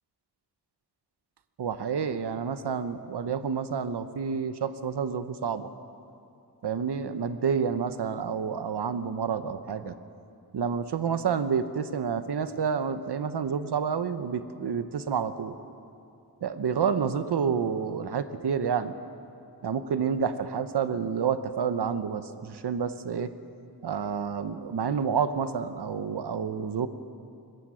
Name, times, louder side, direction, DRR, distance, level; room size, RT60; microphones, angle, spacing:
voice 1, 1.6-5.7 6.6-9.9 10.5-15.5 16.4-18.9 19.6-23.3 23.8-26.9, right 6 dB, 85° right, 11 dB, 1.1 m, -29 dB
24.0 x 21.0 x 6.4 m, 2.6 s
wide cardioid pair, 85°, 39 cm